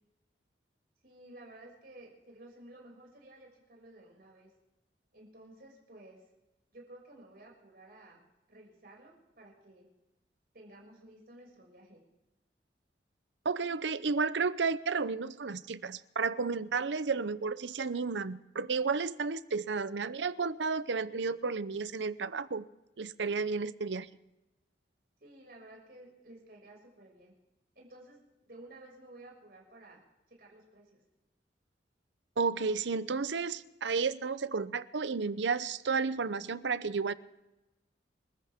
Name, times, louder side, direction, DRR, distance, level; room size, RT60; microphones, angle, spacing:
voice 1, 1.0-4.5 5.1-6.2 6.7-8.2 8.5-9.9 10.5-12.0 25.2-27.3 27.7-28.2 28.5-30.0 30.3-31.0, right 1 dB, 55° right, -1 dB, 6.3 m, -54 dB
voice 2, 13.4-22.7 23.0-24.1 32.4-37.1, right 4 dB, 85° right, 16 dB, 0.7 m, -32 dB
28.5 x 14.0 x 3.6 m, 0.98 s
head